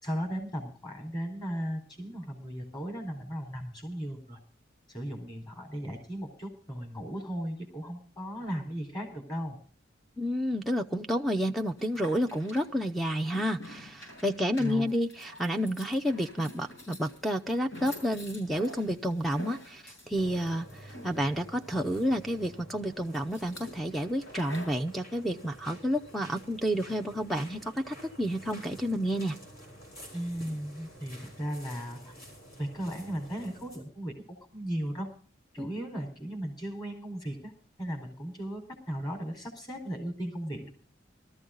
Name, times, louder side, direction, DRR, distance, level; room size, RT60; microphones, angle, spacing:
voice 1, 0.0-4.4 4.9-9.6 14.6-14.9 30.1-32.2 32.6-34.1 34.5-35.1 35.5-37.5 37.8-40.7, equal, 25° left, 3 dB, 4.6 m, -36 dB
voice 2, 10.2-29.4 35.6-35.7, equal, ahead, 7 dB, 0.6 m, -30 dB
sound 1, 11.6-24.8, left 1 dB, 75° left, 7.0 m, -48 dB
sound 2, 20.1-33.8, equal, 50° left, 7.0 m, -50 dB
19.5 x 14.0 x 3.9 m, 0.41 s
head